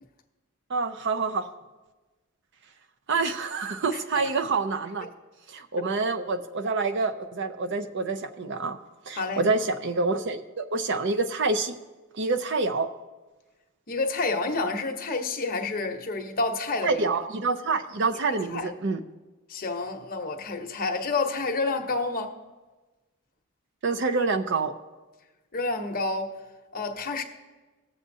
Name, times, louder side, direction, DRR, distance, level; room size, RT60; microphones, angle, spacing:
voice 1, 0.7-1.5 3.1-5.1 5.5-8.8 9.1-11.7 12.2-12.9 16.8-19.0 23.8-24.7, right 3 dB, 55° right, 0.6 m, -27 dB
voice 2, 13.9-17.0 18.3-18.7 19.5-22.4 25.5-26.3 26.7-27.2, left 3 dB, 40° left, 0.9 m, -29 dB
19.0 x 7.5 x 2.7 m
head